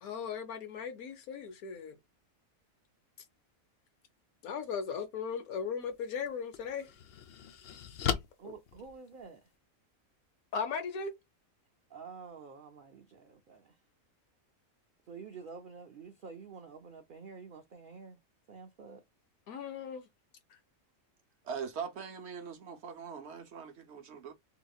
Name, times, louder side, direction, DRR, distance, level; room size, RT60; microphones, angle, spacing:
voice 1, 0.0-1.9 4.4-6.9 8.4-8.5 10.5-11.1 19.5-20.0, left 6 dB, 90° left, 1.3 m, -37 dB
sound 1, 5.8-5.9 6.5-9.5, left 8 dB, 65° left, 0.6 m, -37 dB
voice 2, 8.4-9.5 11.9-13.8 15.1-18.2 18.5-19.0, right 5 dB, 90° right, 0.4 m, -49 dB
voice 3, 21.4-24.3, right 6 dB, 60° right, 0.8 m, -41 dB
3.7 x 2.9 x 2.3 m
omnidirectional pair, 1.5 m